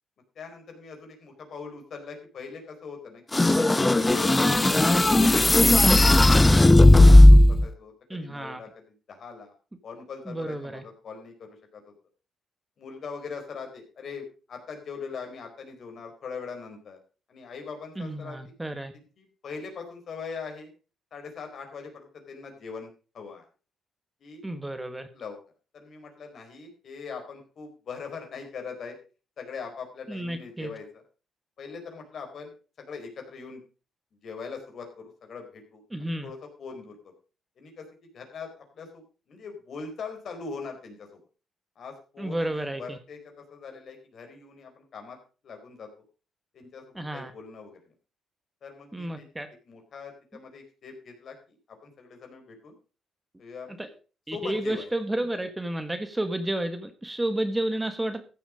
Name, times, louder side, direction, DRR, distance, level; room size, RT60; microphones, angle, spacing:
voice 1, 0.3-5.2 5.8-6.7 7.0-9.5 9.8-11.8 12.8-17.0 17.3-18.8 19.2-20.7 21.1-22.9 23.1-23.4 24.2-24.4 25.1-25.4 25.7-29.0 29.4-31.0 31.6-33.6 34.2-37.0 37.6-37.8 38.1-38.9 39.3-41.1 41.8-43.2 43.5-45.2 45.4-45.9 46.5-47.8 48.6-49.3 49.7-52.7 53.4-53.9 54.3-54.9, left 5 dB, 55° left, 4 dB, 4.2 m, -41 dB
sound 1, 3.3-7.7, left 1 dB, 15° left, 0.9 m, -15 dB
voice 2, 8.1-8.6 10.2-10.8 18.0-18.9 24.4-25.1 30.1-30.7 35.9-36.3 42.2-43.0 46.9-47.3 48.9-49.5 53.8-53.9 54.3-58.2, right 1 dB, 10° right, 9 dB, 1.4 m, -31 dB
14.0 x 7.3 x 5.0 m, 0.35 s
cardioid pair, 90°, 0 cm